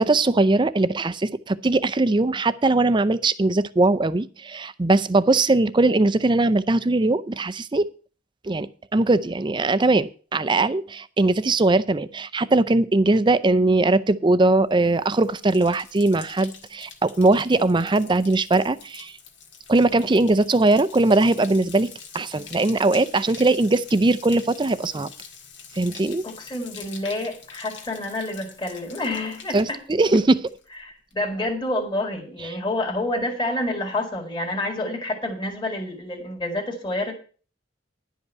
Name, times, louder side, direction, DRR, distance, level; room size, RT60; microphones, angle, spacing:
voice 1, 0.0-7.9 8.4-19.1 19.7-25.1 25.7-26.2 29.5-29.7 30.0-30.5, right 2 dB, 25° right, 15 dB, 0.5 m, -20 dB
Bathtub (filling or washing), 14.7-30.8 31.1-31.6, left 6 dB, 75° left, 1.9 m, -45 dB
voice 2, 26.2-29.8 30.8-37.1, left 1 dB, 25° left, 1 dB, 2.0 m, -28 dB
11.0 x 5.4 x 8.1 m, 0.40 s
head